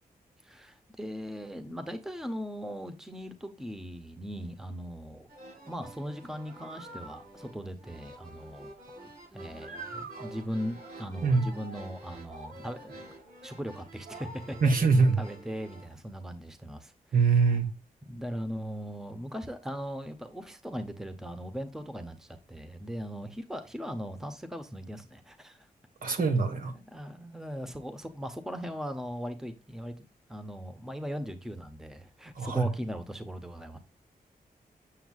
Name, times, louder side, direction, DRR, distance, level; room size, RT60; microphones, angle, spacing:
voice 1, 0.4-5.3 5.7-8.7 9.0-13.1 13.4-14.9 15.2-17.4 18.1-25.7 26.1-26.2 26.6-33.8, equal, 5° right, 0.7 m, -39 dB
sound 1, 5.3-15.9, right 2 dB, 85° right, 4.7 m, -47 dB
voice 2, 14.6-15.2 17.1-17.7 26.0-26.7 32.4-32.6, right 4 dB, 65° right, 1.5 m, -23 dB
7.7 x 7.1 x 2.4 m
wide cardioid pair, 170°, 16 cm